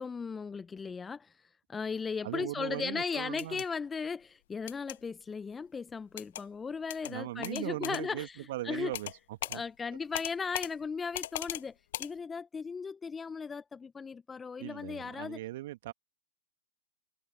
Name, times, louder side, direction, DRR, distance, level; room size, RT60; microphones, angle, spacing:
voice 1, 0.0-1.3 1.7-8.4 8.6-8.9 9.5-11.7 12.0-15.4, left 5 dB, 15° left, 0.8 m, -37 dB
voice 2, 2.2-3.6 7.1-9.6 14.6-15.9, right 16 dB, 55° right, 1.8 m, -39 dB
sound 1, 3.3-3.7 4.7-5.0 6.2-6.4 6.9-7.1 7.4-8.0 8.9-9.2 9.4-9.6 10.1-10.7 11.1-11.6 11.9-12.1, left 13 dB, 55° left, 1.2 m, -38 dB
figure-of-eight pair, 100°, 0 cm